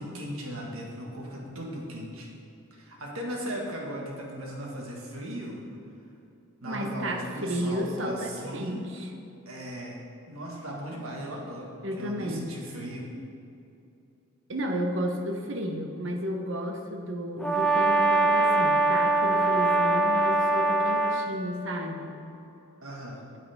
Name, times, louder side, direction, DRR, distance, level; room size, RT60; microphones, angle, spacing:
voice 1, 0.0-2.3 2.7-5.6 6.6-8.9 9.4-10.0 10.3-11.7 12.0-13.1 22.8-23.3, equal, 85° right, -1 dB, 1.7 m, -37 dB
voice 2, 6.6-9.1 11.8-12.5 14.5-22.1, equal, 60° right, 3 dB, 0.9 m, -32 dB
Brass instrument, 17.4-21.3, right 3 dB, 5° left, 0.5 m, -23 dB
9.0 x 8.6 x 3.6 m, 2.7 s
head